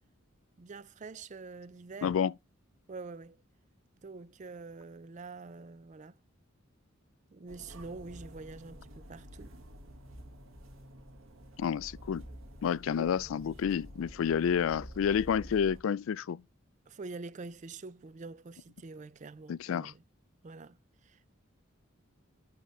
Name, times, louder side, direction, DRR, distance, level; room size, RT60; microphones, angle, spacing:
voice 1, 0.6-2.2 2.9-3.4 4.0-6.2 7.3-9.5 13.0-13.2 16.9-20.0 20.4-20.8 21.0-21.3, right 3 dB, 35° right, 0.4 m, -46 dB
voice 2, 2.0-2.3 11.6-12.3 12.6-16.4 19.5-19.9, left 7 dB, 70° left, 0.3 m, -29 dB
sound 1, 7.5-15.8, equal, 75° right, 1.8 m, -49 dB
11.0 x 3.7 x 3.1 m
head